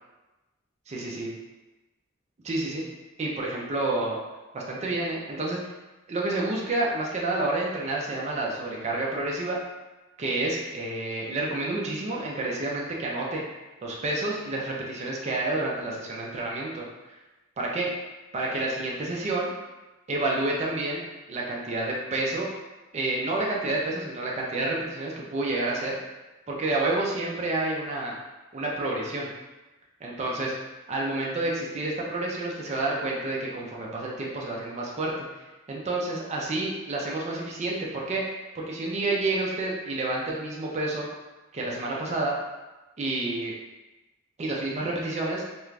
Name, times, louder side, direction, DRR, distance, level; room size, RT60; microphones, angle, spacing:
voice 1, 0.9-1.3 2.4-2.8 3.2-4.2 4.5-5.6 6.1-9.6 10.2-13.4 13.8-16.8 17.6-17.9 18.3-19.5 20.1-21.0 21.3-22.5 22.9-26.0 26.5-28.1 28.5-29.3 30.0-30.5 30.9-35.2 35.7-38.2 38.5-41.1 41.5-42.4 43.0-43.6 44.4-45.4, right 2 dB, 35° right, -3 dB, 0.4 m, -29 dB
2.4 x 2.2 x 3.1 m, 1.1 s
head